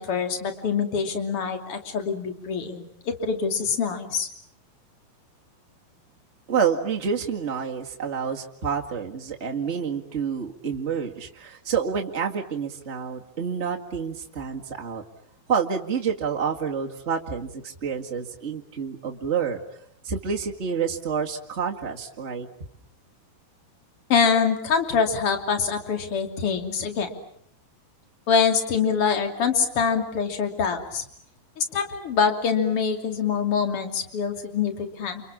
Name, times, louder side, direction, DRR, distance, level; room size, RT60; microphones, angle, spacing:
voice 1, 0.0-4.3 24.1-27.1 28.3-31.0 31.6-35.2, left 6 dB, 35° left, 6 dB, 3.1 m, -25 dB
voice 2, 6.5-15.0 15.5-19.6 20.0-22.5, right 6 dB, 90° right, 1 dB, 0.6 m, -28 dB
29.5 x 27.5 x 7.4 m, 0.68 s
omnidirectional pair, 5.0 m